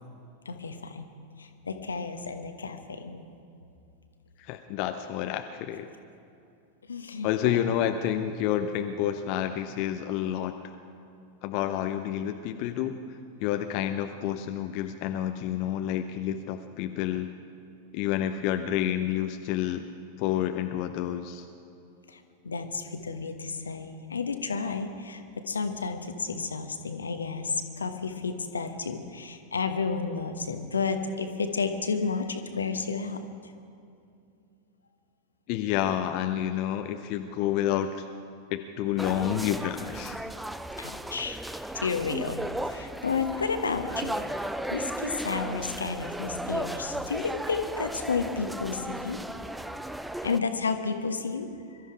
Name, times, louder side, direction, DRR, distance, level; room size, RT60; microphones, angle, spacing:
voice 1, 0.4-1.1 1.4-3.2 6.9-7.6 22.1-33.2 40.8-41.4 41.7-49.2 50.2-51.8, left 4 dB, 75° left, 7 dB, 1.2 m, -32 dB
voice 2, 4.4-5.9 7.2-10.5 11.4-13.0 13.4-17.3 17.9-19.9 20.2-21.5 35.5-38.1 38.5-40.2, left 11 dB, 45° left, 7 dB, 0.7 m, -29 dB
sound 1, 39.0-50.4, right 1 dB, 5° right, 0.5 m, -35 dB
22.5 x 13.0 x 4.8 m, 2.6 s
figure-of-eight pair, 90°, 0 cm